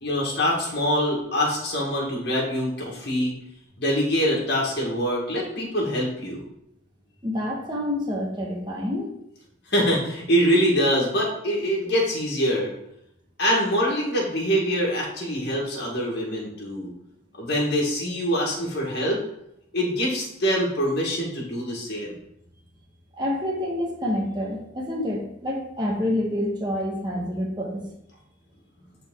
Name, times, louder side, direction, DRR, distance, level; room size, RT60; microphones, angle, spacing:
voice 1, 0.0-3.3 3.8-6.4 9.7-12.7 13.4-16.9 17.4-19.2 19.7-22.1, equal, 55° left, -3 dB, 1.8 m, -24 dB
voice 2, 7.2-9.1 23.2-27.9, left 1 dB, 25° right, -1 dB, 1.3 m, -27 dB
8.9 x 4.0 x 3.7 m, 0.79 s
head